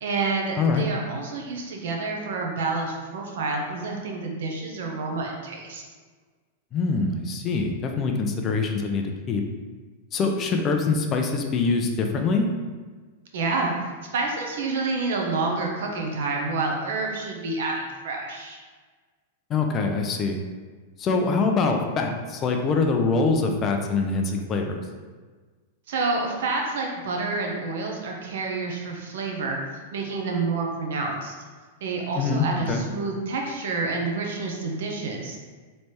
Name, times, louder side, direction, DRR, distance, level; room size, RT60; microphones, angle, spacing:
voice 1, 0.0-5.8 13.3-13.7 14.1-18.6 25.9-29.6 29.9-31.3 31.8-35.4, right 3 dB, 70° right, 1 dB, 0.8 m, -28 dB
voice 2, 6.7-9.4 10.1-12.5 19.5-20.4 21.0-24.8 32.1-32.8, left 4 dB, 25° left, 3 dB, 0.4 m, -24 dB
3.3 x 3.2 x 4.2 m, 1.4 s
supercardioid pair, 160°, 0 cm